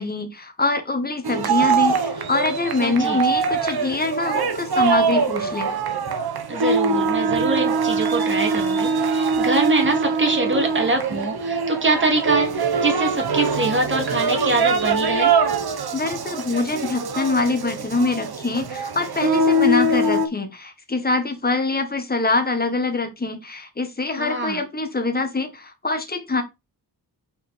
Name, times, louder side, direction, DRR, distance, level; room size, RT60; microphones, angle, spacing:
voice 1, 0.0-5.7 15.9-26.4, left 3 dB, 25° left, 1.5 m, -24 dB
sound 1, 1.2-20.3, right 4 dB, 65° right, 1.1 m, -23 dB
voice 2, 2.8-3.2 6.5-15.3 24.2-24.6, right 2 dB, 30° right, 2.3 m, -24 dB
5.9 x 4.3 x 4.3 m
wide cardioid pair, 105°, 40 cm